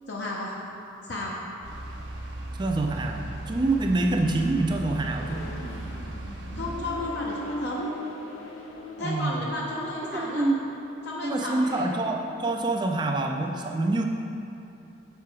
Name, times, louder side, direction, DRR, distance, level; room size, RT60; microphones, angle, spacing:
voice 1, 0.1-0.5 1.1-1.3 6.6-7.9 9.0-10.5 11.0-11.9, left 1 dB, 55° left, -4 dB, 0.7 m, -33 dB
sound 1, 1.6-6.9, right 1 dB, 60° right, 0.7 m, -37 dB
Accelerating revving vroom, 2.1-12.4, equal, 90° left, 0.7 m, -41 dB
voice 2, 2.5-5.5 9.0-9.4 10.1-10.6 11.2-14.0, right 2 dB, 20° right, 3 dB, 0.4 m, -26 dB
6.7 x 4.4 x 4.8 m, 2.8 s
head